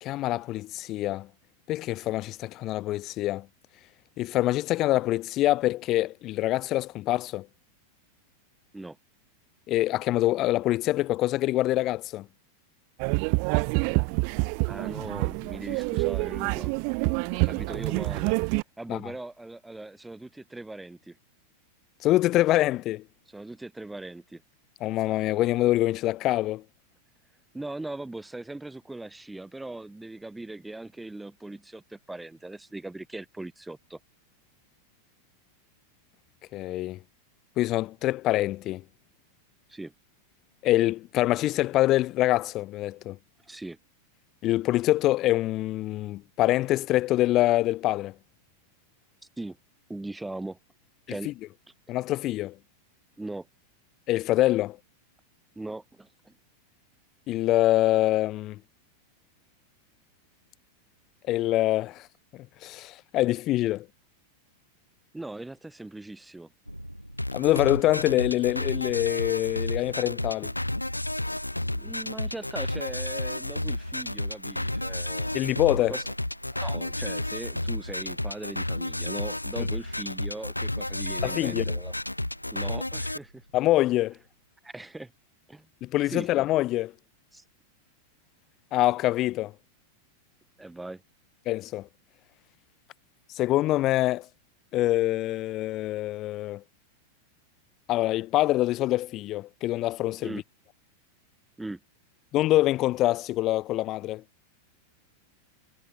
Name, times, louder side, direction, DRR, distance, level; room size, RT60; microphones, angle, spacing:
voice 1, 0.0-1.3 1.7-3.5 4.2-7.5 9.7-12.3 18.9-19.1 22.0-23.0 24.8-26.6 36.5-37.0 37.6-38.8 40.6-43.2 44.4-48.1 51.2-51.3 51.9-52.5 54.1-54.8 57.3-58.6 61.3-62.1 62.3-63.9 67.3-70.5 75.3-75.9 81.2-81.7 83.5-84.2 85.8-86.9 88.7-89.5 91.5-91.9 93.3-94.3 94.7-96.6 97.9-100.4 102.3-104.2, left 16 dB, 35° left, 0.8 m, -25 dB
sound 1, 13.0-18.6, right 40 dB or more, 45° right, 0.4 m, -27 dB
voice 2, 14.4-17.0 17.3-18.4 18.8-21.2 23.3-24.4 27.5-34.0 39.7-39.9 43.4-43.8 49.4-49.6 49.9-50.6 51.1-51.3 53.2-53.5 55.6-56.3 65.1-66.5 71.6-75.3 75.9-76.0 76.5-81.9 82.5-83.4 84.6-85.1 85.5-85.7 86.1-86.3 87.3-87.4 90.6-91.0 100.2-100.4 101.6-101.8, right 2 dB, 5° right, 2.4 m, -39 dB
sound 2, 66.6-84.3, equal, 90° right, 4.1 m, -46 dB
sound 3, 67.2-83.2, left 1 dB, 85° left, 1.4 m, -32 dB
figure-of-eight pair, 90°, 0 cm